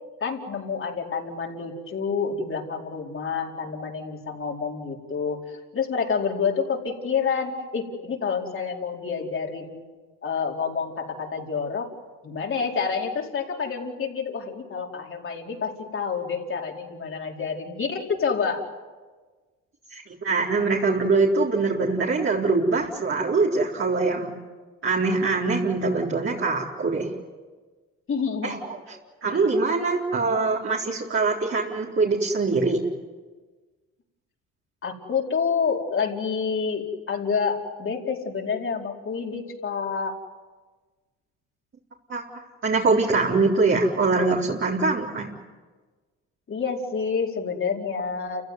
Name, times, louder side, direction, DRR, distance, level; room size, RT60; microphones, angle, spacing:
voice 1, 0.2-9.8 10.2-11.9 12.2-18.7 28.1-28.6 29.3-29.4 34.8-40.2 46.5-48.5, left 5 dB, 40° left, 0 dB, 4.8 m, -28 dB
voice 2, 19.9-24.3 24.8-27.1 28.4-28.8 29.2-32.8 42.1-42.2 42.6-45.3, right 3 dB, 40° right, -3 dB, 4.1 m, -23 dB
29.0 x 16.0 x 9.5 m, 1.3 s
supercardioid pair, 85°, 31 cm